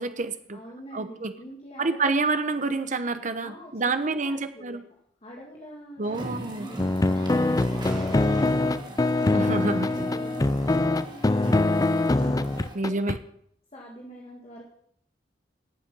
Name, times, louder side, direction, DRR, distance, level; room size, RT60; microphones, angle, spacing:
voice 1, 0.0-0.6 0.9-1.3 1.8-4.8 6.0-6.7 9.3-9.9 12.7-13.2, right 3 dB, 45° right, 10 dB, 0.9 m, -28 dB
voice 2, 0.5-2.1 3.4-9.5 10.1-12.9 13.7-14.7, equal, 35° left, -2 dB, 2.0 m, -44 dB
sound 1, 6.0-12.7, right 1 dB, 25° right, 2.6 m, -38 dB
sound 2, 6.8-13.2, left 2 dB, 20° left, 0.4 m, -23 dB
17.5 x 7.6 x 5.4 m, 0.69 s
head